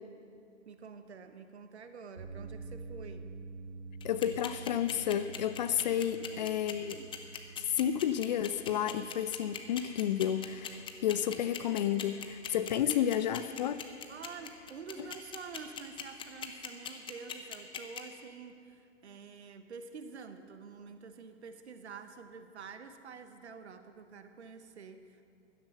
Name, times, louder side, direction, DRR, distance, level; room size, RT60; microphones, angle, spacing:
voice 1, 0.6-3.3 6.3-7.1 14.1-25.3, right 5 dB, 65° right, 9 dB, 1.3 m, -48 dB
sound 1, 2.2-16.4, right 3 dB, 80° right, 3.3 m, -50 dB
voice 2, 4.0-7.0 7.6-13.8, left 10 dB, 35° left, 13 dB, 0.5 m, -31 dB
sound 2, 4.0-18.0, left 9 dB, 15° left, 0.9 m, -40 dB
16.0 x 12.0 x 6.7 m, 2.4 s
figure-of-eight pair, 110°, 37 cm